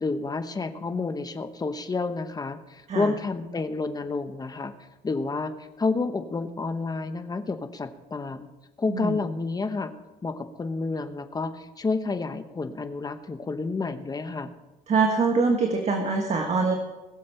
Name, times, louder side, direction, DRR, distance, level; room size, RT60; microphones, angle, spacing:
voice 1, 0.0-4.7 5.0-8.5 8.8-9.9 10.2-14.5, left 3 dB, 20° left, 9 dB, 1.0 m, -30 dB
voice 2, 8.9-9.2 14.9-16.7, right 4 dB, 40° right, 2 dB, 1.6 m, -24 dB
21.0 x 7.4 x 4.4 m, 1.1 s
cardioid pair, 110°, 17 cm